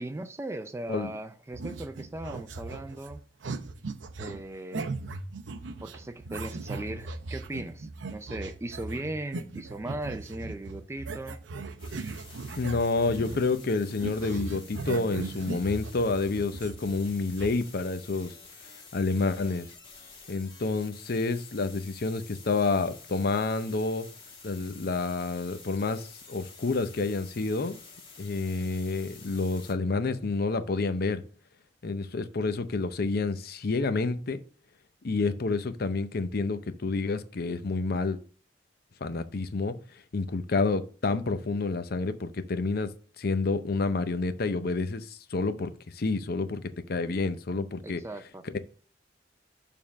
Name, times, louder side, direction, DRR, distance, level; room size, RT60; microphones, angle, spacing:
voice 1, 0.0-3.2 4.2-4.9 5.8-11.4 47.8-48.4, right 1 dB, 15° right, 0.4 m, -38 dB
sound 1, 1.5-13.6 13.9-17.5, right 3 dB, 90° right, 0.6 m, -38 dB
sound 2, 11.8-29.7, left 4 dB, 30° left, 1.7 m, -50 dB
voice 2, 12.6-18.4 18.9-19.7 20.3-24.1 24.4-27.8 28.2-31.2 31.8-34.4 35.0-38.2 39.0-39.8 40.1-48.0 48.5-48.6, left 3 dB, 55° left, 0.6 m, -29 dB
6.8 x 3.6 x 6.3 m
head